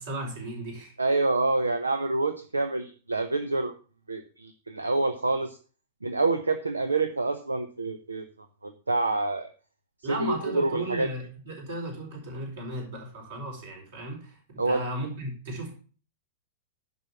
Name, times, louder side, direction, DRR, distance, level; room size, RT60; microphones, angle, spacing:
voice 1, 0.0-0.9 10.0-15.7, right 1 dB, 55° right, 0 dB, 4.6 m, -35 dB
voice 2, 1.0-3.7 4.1-5.6 6.0-8.2 8.6-9.5 10.1-11.1 14.6-14.8, right 3 dB, 80° right, 10 dB, 0.7 m, -27 dB
10.5 x 5.5 x 5.9 m, 0.39 s
figure-of-eight pair, 100°, 0 cm